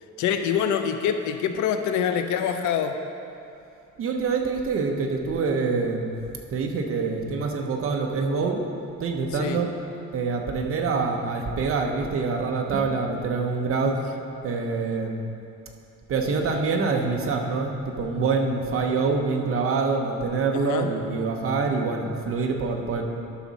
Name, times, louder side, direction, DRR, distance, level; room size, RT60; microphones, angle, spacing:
voice 1, 0.2-3.0 9.3-9.6 13.8-13.9 20.5-20.9, left 8 dB, 80° left, 7 dB, 0.6 m, -25 dB
voice 2, 4.0-6.1 6.5-8.6 9.0-9.7 10.1-14.0 14.4-15.3 16.1-23.0, right 4 dB, 50° right, 2 dB, 0.9 m, -25 dB
11.5 x 6.2 x 4.1 m, 2.7 s
cardioid pair, 155°, 29 cm